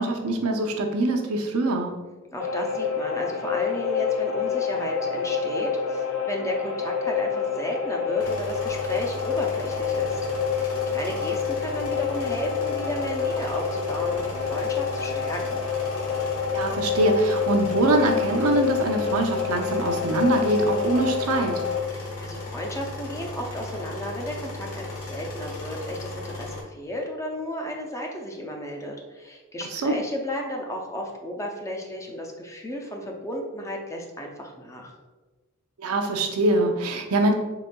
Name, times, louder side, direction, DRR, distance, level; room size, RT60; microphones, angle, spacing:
voice 1, 0.0-1.9 16.5-21.6 29.7-29.9 35.8-37.3, right 2 dB, 85° right, 3 dB, 0.5 m, -23 dB
voice 2, 2.3-10.2 10.5-15.6 21.9-34.9, equal, 15° left, 1 dB, 0.4 m, -33 dB
sound 1, 2.4-21.8, left 6 dB, 75° left, 0.5 m, -28 dB
sound 2, 8.2-26.6, left 2 dB, 90° left, 1.0 m, -36 dB
3.9 x 3.5 x 2.2 m, 1.3 s
head